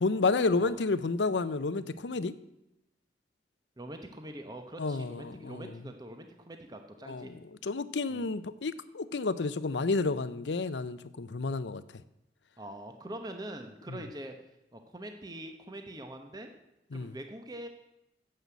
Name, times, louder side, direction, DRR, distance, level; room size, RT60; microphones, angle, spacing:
voice 1, 0.0-2.3 4.8-5.7 7.1-7.3 7.6-11.8 16.9-17.1, left 3 dB, 85° left, 0.6 m, -30 dB
voice 2, 3.8-7.3 8.1-8.3 12.6-14.3 14.7-16.5 16.9-17.7, right 1 dB, 20° right, 1.0 m, -44 dB
9.3 x 7.8 x 8.3 m
head